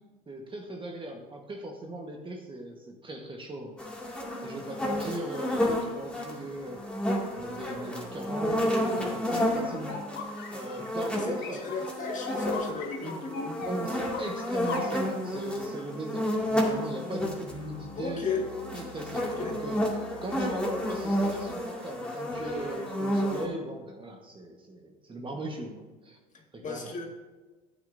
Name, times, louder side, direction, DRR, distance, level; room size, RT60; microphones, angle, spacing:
voice 1, 0.3-3.8 4.4-6.8 7.3-11.6 13.6-18.2 18.7-26.2 26.5-26.9, right 1 dB, 25° right, 2 dB, 1.4 m, -38 dB
sound 1, 3.8-17.5 18.3-23.5, equal, 5° left, 2.4 m, -31 dB
sound 2, 9.9-10.9 11.4-14.9, left 4 dB, 55° left, 1.9 m, -38 dB
voice 2, 11.6-13.6 18.0-18.5 19.2-19.6 26.6-27.1, left 4 dB, 35° left, 0 dB, 2.0 m, -34 dB
sound 3, 17.5-21.5, left 2 dB, 70° left, 2.3 m, -46 dB
13.0 x 8.8 x 2.7 m, 1.2 s
supercardioid pair, 90°, 21 cm